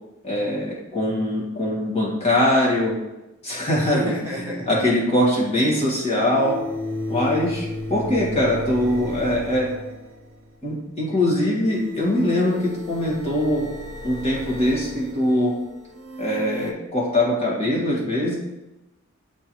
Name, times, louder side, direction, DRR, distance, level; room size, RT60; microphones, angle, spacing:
voice 1, 0.2-3.0 3.4-6.6 7.1-9.7 10.6-13.7 14.0-15.5 16.2-18.3, left 1 dB, 30° left, -5 dB, 1.8 m, -22 dB
voice 2, 3.8-4.8, right 1 dB, 10° right, -6 dB, 1.3 m, -30 dB
sound 1, 6.2-10.6 11.5-16.7, left 1 dB, 80° right, 0.7 m, -34 dB
7.0 x 4.3 x 3.1 m, 0.97 s
head